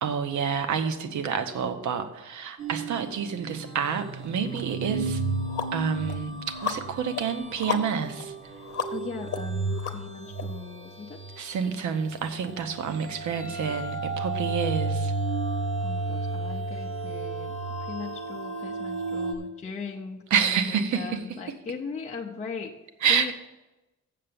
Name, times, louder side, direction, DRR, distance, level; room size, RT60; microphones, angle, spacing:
voice 1, 0.0-5.2 5.7-6.3 6.6-8.3 11.4-15.1 20.3-21.2 23.0-23.3, right 6 dB, 70° right, 9 dB, 0.9 m, -28 dB
sound 1, 2.6-11.7 12.0-19.3, right 3 dB, 45° right, 1.0 m, -33 dB
sound 2, 4.5-4.6 5.1-10.4, left 7 dB, 50° left, 0.9 m, -36 dB
voice 2, 8.9-11.2 15.8-22.7 23.1-23.3, left 5 dB, 25° left, 0 dB, 0.5 m, -39 dB
7.5 x 6.7 x 6.8 m, 1.0 s
wide cardioid pair, 180°, 31 cm